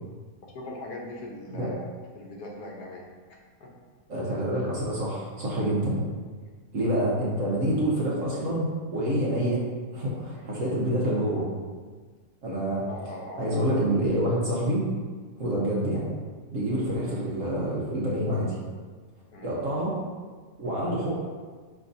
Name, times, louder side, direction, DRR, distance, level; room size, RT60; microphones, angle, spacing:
voice 1, 0.5-1.9 2.1-3.1 3.6-3.7 6.4-6.5 10.3-10.5 12.9-13.8 19.3-19.5, left 1 dB, 70° left, -1 dB, 1.3 m, -40 dB
voice 2, 4.1-6.0 6.7-9.7 9.9-11.5 12.4-12.9 13.4-14.9 15.4-16.1 16.5-18.5 19.4-20.0 20.6-21.1, right 1 dB, 55° right, -5 dB, 1.1 m, -27 dB
5.1 x 3.5 x 2.6 m, 1.5 s
omnidirectional pair, 1.8 m